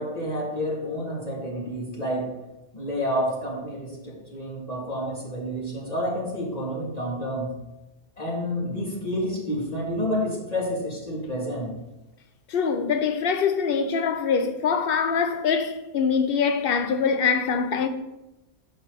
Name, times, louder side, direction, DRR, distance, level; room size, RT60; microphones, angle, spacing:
voice 1, 0.0-2.4 2.7-7.5 8.2-11.8, equal, 35° left, 2.2 m, -29 dB
voice 2, 12.5-17.9, left 6 dB, 60° left, 0.9 m, -24 dB
6.8 x 5.7 x 4.7 m
omnidirectional pair, 1.2 m